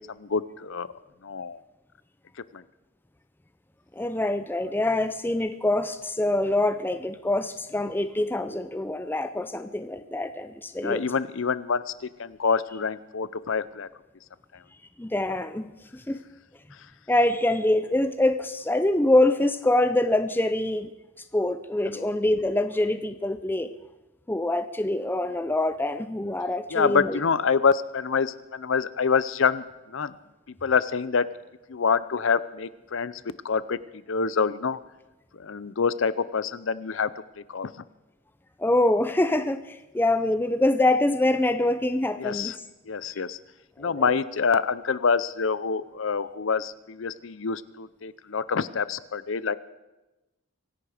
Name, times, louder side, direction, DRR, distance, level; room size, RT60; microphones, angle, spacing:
voice 1, 0.2-0.9 1.2-1.6 2.5-2.6 10.8-13.9 21.9-22.1 26.7-30.2 30.6-31.4 31.7-33.8 34.1-34.8 35.3-37.1 37.5-37.7 42.2-42.5 42.9-43.4 43.8-49.6, left 5 dB, 60° left, 17 dB, 0.6 m, -26 dB
voice 2, 3.9-11.0 15.0-16.2 17.1-20.9 21.3-23.7 24.3-27.2 38.6-42.5 43.8-44.2, left 1 dB, 10° left, 10 dB, 0.5 m, -25 dB
24.0 x 11.0 x 5.0 m, 1.0 s
head